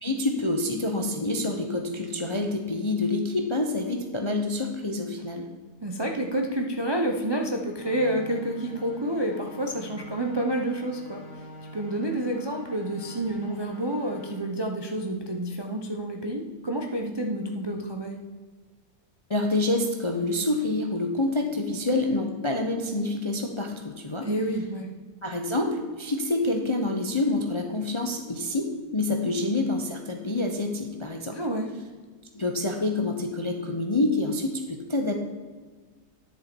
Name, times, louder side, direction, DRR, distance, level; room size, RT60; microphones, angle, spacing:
voice 1, 0.0-5.5 19.3-24.3 25.2-31.4 32.3-35.1, left 2 dB, 35° left, 3 dB, 0.4 m, -27 dB
voice 2, 5.8-11.2 11.7-18.2 24.2-24.9 29.2-29.3 31.3-31.7, right 1 dB, 35° right, 2 dB, 0.4 m, -29 dB
sound 1, 7.7-14.3, equal, 90° left, 2.3 m, -45 dB
10.5 x 6.8 x 4.5 m, 1.4 s
omnidirectional pair, 1.8 m